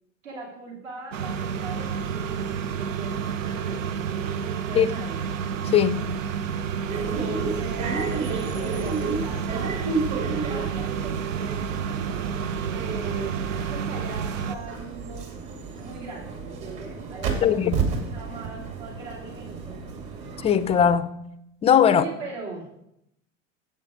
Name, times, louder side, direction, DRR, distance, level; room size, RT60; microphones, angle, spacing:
voice 1, 0.2-5.3 6.6-9.8 10.1-11.8 12.7-15.3 15.8-19.9 21.9-22.9, right 3 dB, 75° right, 2.8 m, -40 dB
sound 1, 1.1-14.6, right 7 dB, 90° right, 0.6 m, -30 dB
voice 2, 5.7-6.1 17.4-17.7 20.4-21.1 21.6-22.0, left 8 dB, 15° left, 0.4 m, -19 dB
sound 2, 6.9-20.9, right 4 dB, 50° right, 2.1 m, -32 dB
7.4 x 7.3 x 5.0 m
hypercardioid pair, 95°, 38 cm